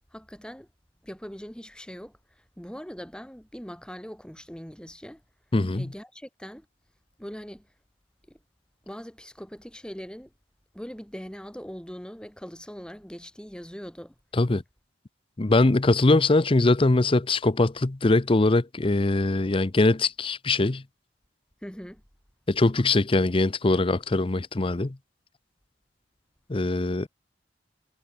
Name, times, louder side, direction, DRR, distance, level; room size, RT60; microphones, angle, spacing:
voice 1, 0.1-0.7 1.0-5.2 5.7-6.7 7.2-7.7 8.3-8.4 8.9-10.3 10.7-14.1 21.6-22.0, equal, 5° left, 4.5 m, -41 dB
voice 2, 5.5-5.8 14.3-14.6 15.4-20.8 22.5-25.0 26.5-27.1, left 2 dB, 30° left, 0.7 m, -22 dB
head